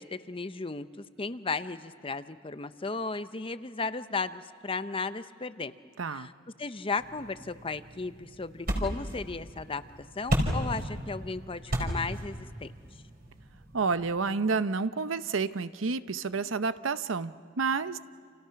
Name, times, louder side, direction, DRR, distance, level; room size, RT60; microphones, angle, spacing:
voice 1, 0.0-5.7 6.1-6.3 6.6-9.8 10.2-12.7, left 4 dB, 30° left, 12 dB, 0.7 m, -35 dB
voice 2, 6.0-6.3 13.7-18.0, right 4 dB, 85° right, 13 dB, 0.8 m, -30 dB
sound 1, 7.0-14.1, equal, 50° right, 4.9 m, -35 dB
30.0 x 28.5 x 5.9 m, 2.4 s
head